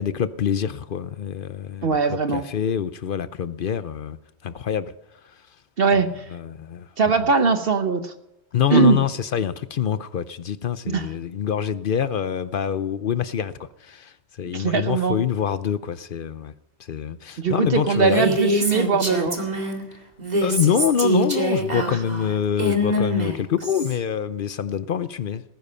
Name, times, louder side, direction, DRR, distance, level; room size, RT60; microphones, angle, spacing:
voice 1, 0.0-4.2 4.4-4.9 5.3-5.4 6.3-6.9 8.5-16.5 16.8-18.4 20.4-25.4, left 8 dB, 55° left, 0.7 m, -25 dB
voice 2, 1.8-2.5 5.8-6.3 7.0-8.1 8.7-9.0 10.9-11.1 14.5-15.2 17.4-19.4 21.9-22.0, right 5 dB, 60° right, 1.1 m, -20 dB
Female speech woman speaking, 18.0-19.8 20.2-23.9, equal, 40° right, 2.3 m, -24 dB
19.5 x 10.5 x 5.6 m
omnidirectional pair, 1.2 m